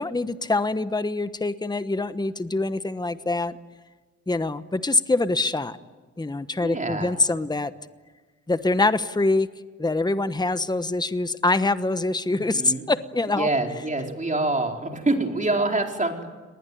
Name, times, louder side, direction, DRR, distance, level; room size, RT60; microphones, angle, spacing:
voice 1, 0.0-3.6 4.3-5.8 6.2-7.7 8.5-9.5 9.8-13.5, left 2 dB, 15° left, 12 dB, 1.1 m, -24 dB
voice 2, 6.6-7.1 12.3-12.8 13.4-16.3, right 2 dB, 25° right, 2 dB, 4.4 m, -26 dB
30.0 x 20.0 x 9.3 m, 1.3 s
cardioid pair, 75°, 29 cm